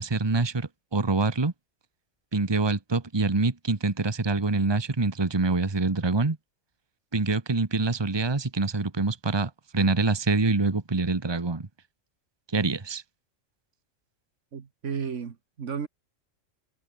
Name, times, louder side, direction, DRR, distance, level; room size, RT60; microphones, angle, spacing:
voice 1, 0.0-1.5 2.3-6.4 7.1-11.7 12.5-13.0, right 3 dB, 20° right, 1.3 m, -25 dB
voice 2, 14.5-15.9, right 6 dB, 65° right, 1.6 m, -33 dB
omnidirectional pair, 1.4 m